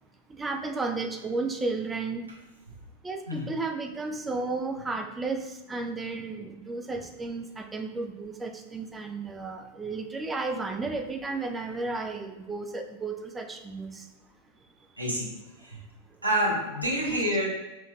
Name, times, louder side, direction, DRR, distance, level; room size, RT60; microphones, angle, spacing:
voice 1, 0.4-2.3 3.0-14.0 17.0-17.2, right 3 dB, 15° right, 5 dB, 0.4 m, -33 dB
voice 2, 15.0-15.3 15.6-15.8 16.2-17.5, equal, 85° right, -4 dB, 1.0 m, -27 dB
5.4 x 2.9 x 2.3 m, 1.0 s
figure-of-eight pair, 90°, 0 cm